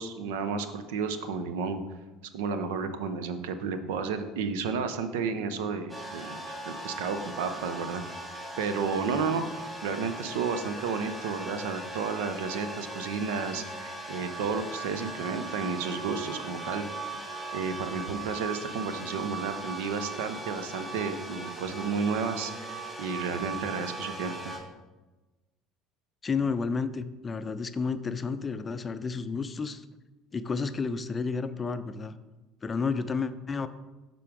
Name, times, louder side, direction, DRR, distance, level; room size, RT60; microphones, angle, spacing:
voice 1, 0.0-1.8 2.3-6.4 6.7-16.8 17.5-24.4, right 5 dB, 70° right, 10 dB, 0.6 m, -32 dB
sound 1, 5.9-24.6, right 2 dB, 10° right, 2.2 m, -39 dB
voice 2, 26.2-29.8 30.3-32.1 32.6-33.7, left 5 dB, 25° left, 11 dB, 0.5 m, -31 dB
11.0 x 3.8 x 3.6 m, 1.1 s
figure-of-eight pair, 65°, 0 cm